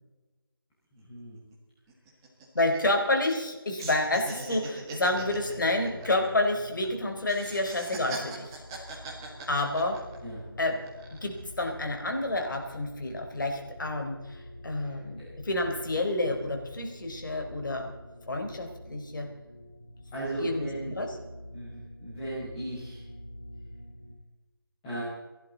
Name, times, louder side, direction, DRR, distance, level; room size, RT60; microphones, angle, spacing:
sound 1, 1.0-1.1 1.4-1.5 1.9-3.5 3.8-6.9 7.2-10.4 10.8-11.4, right 3 dB, 10° right, 1.6 m, -41 dB
voice 1, 2.5-8.6 9.5-10.0 10.6-10.8 11.2-17.9 18.3-19.3 20.4-21.2, left 2 dB, 55° left, 3 dB, 3.9 m, -29 dB
sound 2, 5.1-24.1, equal, 35° left, 4.7 m, -47 dB
voice 2, 14.7-15.3 20.1-20.9 21.5-23.0 24.8-25.0, right 2 dB, 10° left, -11 dB, 4.9 m, -37 dB
29.0 x 11.5 x 4.0 m, 1.2 s
figure-of-eight pair, 170°, 13 cm